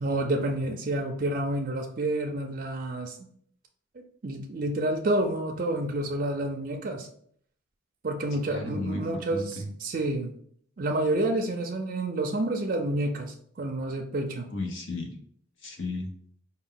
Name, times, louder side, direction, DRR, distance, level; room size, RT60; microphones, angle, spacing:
voice 1, 0.0-3.3 4.0-7.1 8.0-10.3 10.8-14.5, right 1 dB, 40° right, 2 dB, 0.4 m, -29 dB
voice 2, 8.5-9.7 14.5-15.1 15.6-16.1, left 2 dB, 70° left, 2 dB, 0.9 m, -34 dB
4.4 x 2.2 x 3.7 m, 0.62 s
head